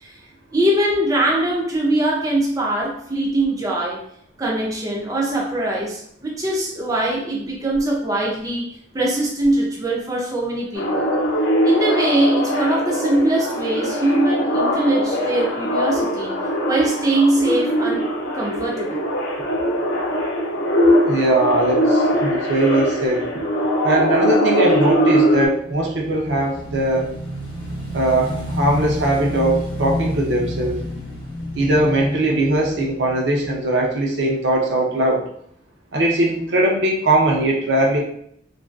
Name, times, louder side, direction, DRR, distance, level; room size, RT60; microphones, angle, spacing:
voice 1, 0.5-4.0 4.4-8.6 8.9-11.1 11.6-16.3 16.7-18.0 18.3-19.0, right 1 dB, 20° right, -3 dB, 0.4 m, -21 dB
sound 1, 10.7-25.5, equal, 80° left, 0.6 m, -21 dB
voice 2, 21.0-23.3 23.8-27.1 27.9-30.8 31.5-35.3 35.9-38.0, right 1 dB, 70° right, 0 dB, 0.5 m, -20 dB
Motorcycle / Engine, 25.4-33.8, left 1 dB, 25° left, 0.6 m, -30 dB
2.4 x 2.3 x 2.3 m, 0.68 s
head